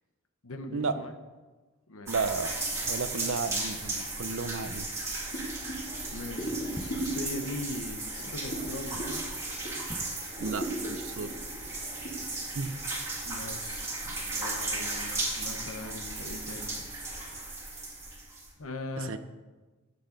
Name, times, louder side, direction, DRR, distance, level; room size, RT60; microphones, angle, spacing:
voice 1, 0.4-1.1 1.9-2.1 6.1-9.3 13.2-17.8 18.6-19.2, left 2 dB, 70° left, 7 dB, 1.0 m, -41 dB
sound 1, 2.1-18.5, right 2 dB, 15° right, 2.3 m, -36 dB
voice 2, 2.1-2.5 2.8-4.9 10.4-11.3 12.5-12.7 19.0-19.2, right 4 dB, 65° right, 11 dB, 0.6 m, -33 dB
sound 2, 5.3-9.9 10.3-12.1, right 1 dB, 45° left, 2.4 m, -38 dB
sound 3, 6.7-7.2 8.7-9.2 9.8-10.2 10.5-10.6, left 1 dB, 15° left, 0.4 m, -45 dB
13.0 x 8.6 x 3.9 m, 1.3 s
head